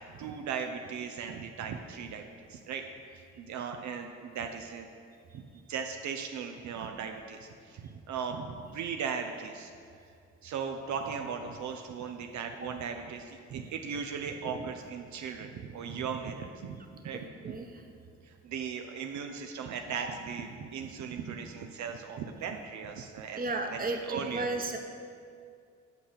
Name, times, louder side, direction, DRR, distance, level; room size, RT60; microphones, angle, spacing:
voice 1, 0.0-2.2 2.5-2.8 3.1-4.9 5.3-5.4 5.7-9.7 10.4-16.8 17.0-17.6 18.2-24.5, right 6 dB, 70° right, 5 dB, 0.7 m, -38 dB
voice 2, 17.4-17.8 20.0-20.1 23.4-24.8, right 2 dB, 30° right, 4 dB, 1.1 m, -34 dB
8.3 x 5.7 x 6.7 m, 2.3 s
cardioid pair, 90°, 30 cm